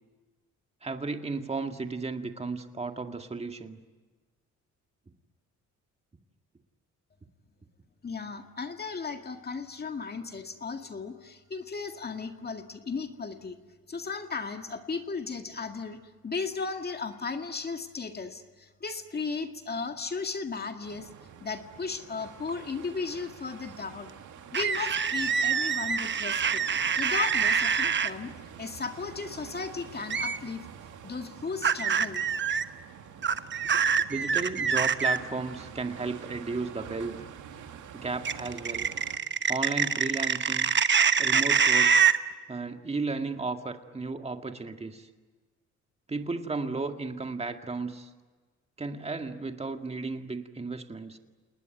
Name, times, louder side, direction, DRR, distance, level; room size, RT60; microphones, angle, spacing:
voice 1, 0.8-3.8 34.1-37.2 37.9-38.9 39.5-40.7 41.2-42.0 42.5-45.1 46.1-48.1 48.8-51.2, right 3 dB, 20° right, 6 dB, 1.9 m, -34 dB
voice 2, 8.0-13.6 13.9-16.0 16.2-21.1 21.4-24.1 24.5-26.6 26.9-28.3 28.6-30.7 31.0-32.3, left 4 dB, 30° left, 5 dB, 2.0 m, -35 dB
sound 1, 20.8-39.2, right 8 dB, 75° right, 2.2 m, -47 dB
sound 2, 24.5-28.1 30.1-30.4 31.6-32.6 33.2-35.2 38.2-42.2, right 6 dB, 40° right, 1.1 m, -25 dB
29.0 x 19.5 x 9.2 m, 1.4 s
cardioid pair, 90°, 30 cm